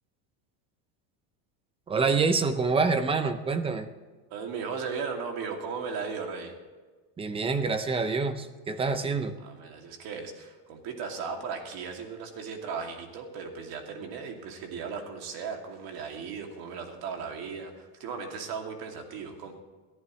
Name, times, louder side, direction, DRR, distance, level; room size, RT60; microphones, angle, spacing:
voice 1, 1.9-3.9 7.2-9.3, right 4 dB, 10° right, 10 dB, 0.5 m, -26 dB
voice 2, 4.3-6.5 9.4-19.6, right 5 dB, 50° right, 3 dB, 2.6 m, -36 dB
22.0 x 14.5 x 3.2 m, 1.4 s
cardioid pair, 165°, 48 cm